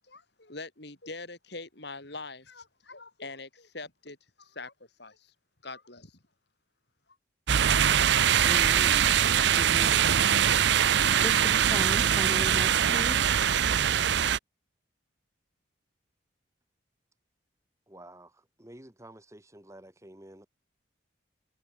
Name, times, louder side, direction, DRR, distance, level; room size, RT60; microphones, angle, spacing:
voice 1, 0.1-4.7 5.0-5.3 5.6-6.2, left 3 dB, 55° left, 4.0 m, -43 dB
sound 1, 7.5-14.4, right 9 dB, 60° right, 0.5 m, -23 dB
voice 2, 8.4-9.2 9.5-10.1 11.2-13.2, equal, 5° left, 2.1 m, -38 dB
voice 3, 17.9-20.5, right 1 dB, 15° right, 1.7 m, -50 dB
head